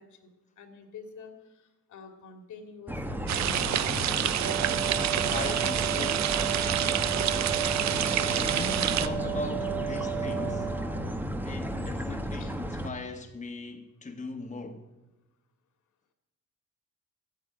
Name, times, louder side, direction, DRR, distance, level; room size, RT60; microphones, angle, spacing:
voice 1, 0.0-3.5 12.4-12.5, left 5 dB, 75° left, 2.5 m, -48 dB
sound 1, 2.9-12.9, equal, 5° right, 1.3 m, -34 dB
sound 2, 3.3-9.1, right 11 dB, 65° right, 0.8 m, -28 dB
Wind instrument woodwind instrument, 4.4-11.2, right 9 dB, 90° right, 1.5 m, -34 dB
voice 2, 5.3-6.4 8.3-10.7 11.4-14.9, left 3 dB, 25° left, 1.5 m, -39 dB
13.5 x 9.0 x 8.8 m
cardioid pair, 90°, 30 cm